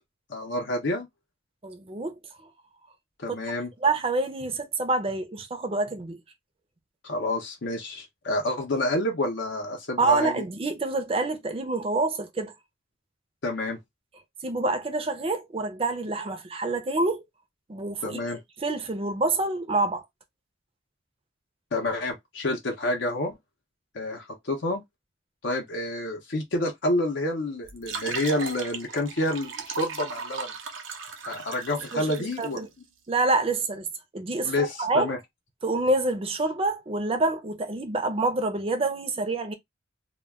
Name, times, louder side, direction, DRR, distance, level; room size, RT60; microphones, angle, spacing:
voice 1, 0.3-1.1 3.2-3.7 7.0-10.4 13.4-13.8 18.0-18.4 21.7-23.3 23.9-24.8 25.4-30.5 31.2-32.6 34.4-35.2, left 1 dB, 60° left, 0.6 m, -28 dB
voice 2, 1.6-2.1 3.3-3.4 3.8-6.2 10.0-12.5 14.4-17.2 17.7-18.2 18.6-20.0 31.9-32.7 33.1-33.9 34.1-35.1 35.6-39.5, right 2 dB, 30° right, 0.5 m, -27 dB
sound 1, 27.6-32.6, right 5 dB, 70° right, 0.6 m, -37 dB
2.2 x 2.2 x 3.4 m
head